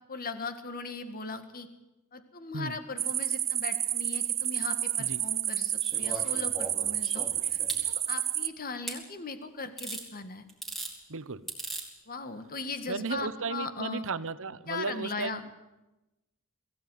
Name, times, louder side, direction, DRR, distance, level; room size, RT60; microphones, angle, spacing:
voice 1, 0.1-1.7 2.1-10.4 12.1-14.0 14.7-15.4, left 4 dB, 40° left, 9 dB, 1.8 m, -39 dB
sound 1, 3.0-8.5, right 10 dB, 30° right, 0.8 m, -30 dB
sound 2, 5.8-7.8 8.9-9.0 9.8-10.1 10.5-10.9 11.5-11.9 13.1-13.2, right 2 dB, ahead, 4.4 m, -39 dB
voice 2, 11.1-11.4 12.9-15.4, right 4 dB, 65° right, 14 dB, 1.0 m, -35 dB
21.5 x 16.0 x 9.4 m, 1.0 s
head